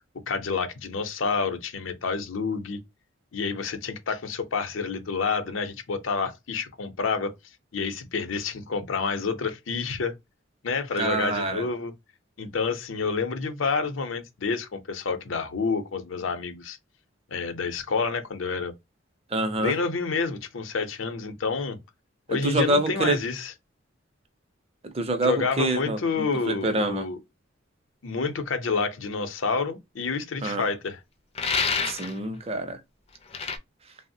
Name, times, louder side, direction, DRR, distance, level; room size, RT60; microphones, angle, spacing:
voice 1, 0.3-2.8 3.3-7.3 7.7-10.1 10.6-11.9 12.4-16.8 17.3-18.7 19.6-21.8 22.3-23.5 25.2-27.2 28.0-31.0, left 4 dB, 85° left, 0.6 m, -28 dB
voice 2, 10.9-11.7 19.3-19.8 22.3-23.2 24.8-27.1 30.4-30.7 31.8-32.8, right 2 dB, 30° right, 0.5 m, -26 dB
sound 1, 31.4-32.2 33.3-33.6, left 5 dB, 30° left, 0.4 m, -27 dB
3.2 x 2.0 x 2.6 m
head